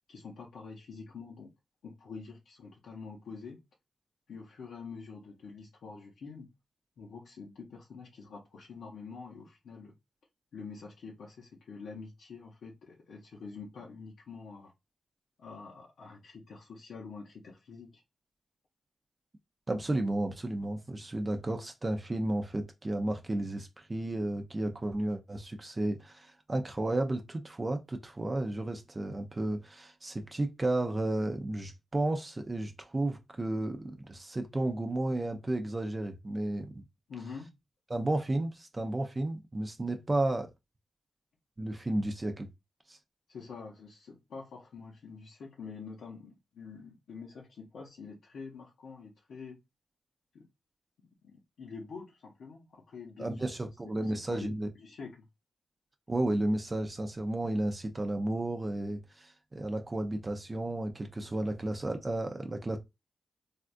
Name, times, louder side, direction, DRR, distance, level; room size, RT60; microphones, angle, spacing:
voice 1, 0.1-1.5 1.8-3.6 4.3-6.5 7.0-9.9 10.5-14.7 15.4-18.0 19.9-20.0 37.1-37.5 43.3-49.6 50.3-50.5 51.2-53.4 54.0-54.5 54.8-55.3, left 5 dB, 85° left, 0.7 m, -46 dB
voice 2, 19.7-36.8 37.9-40.5 41.6-42.5 42.9-43.0 53.2-54.7 56.1-62.8, right 1 dB, 25° right, 0.5 m, -33 dB
3.4 x 2.3 x 2.5 m
cardioid pair, 70°, 0 cm